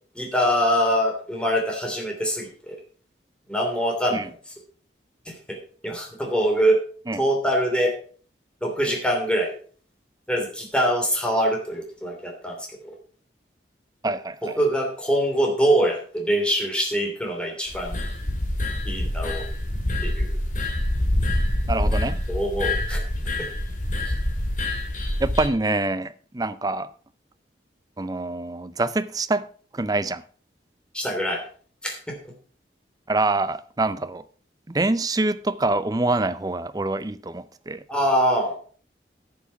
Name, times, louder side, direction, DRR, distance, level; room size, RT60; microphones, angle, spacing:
voice 1, 0.1-2.8 3.5-4.2 5.3-5.6 5.8-6.8 7.2-7.9 8.6-9.5 10.3-12.5 14.4-18.0 18.8-19.4 20.0-20.3 22.3-23.0 30.9-31.4 31.8-32.1 37.9-38.5, equal, 5° left, 3.0 m, -23 dB
voice 2, 14.0-14.6 21.7-22.2 25.2-26.9 28.0-29.5 29.7-30.2 33.1-34.2 34.7-37.8, right 2 dB, 20° right, 0.5 m, -25 dB
sound 1, 17.7-25.5, left 1 dB, 45° left, 2.3 m, -26 dB
10.5 x 7.4 x 5.8 m
head